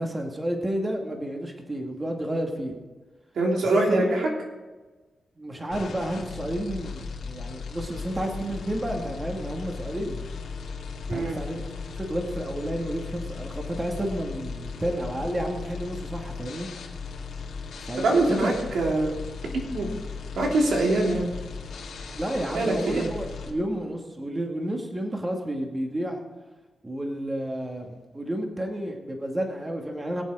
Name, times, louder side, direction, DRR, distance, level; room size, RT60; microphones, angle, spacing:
voice 1, 0.0-2.7 3.7-4.1 5.4-10.2 11.1-11.6 12.0-16.7 17.8-18.5 22.1-26.2 26.8-30.2, right 1 dB, 20° right, 1 dB, 2.2 m, -31 dB
voice 2, 3.3-4.3 11.1-11.4 18.0-19.1 19.5-19.9 20.4-21.3 22.5-23.1, right 2 dB, 80° right, 0 dB, 3.0 m, -23 dB
sound 1, 5.7-23.5, left 5 dB, 90° left, 2.6 m, -37 dB
21.5 x 7.6 x 5.0 m, 1.2 s
cardioid pair, 75°, 0 cm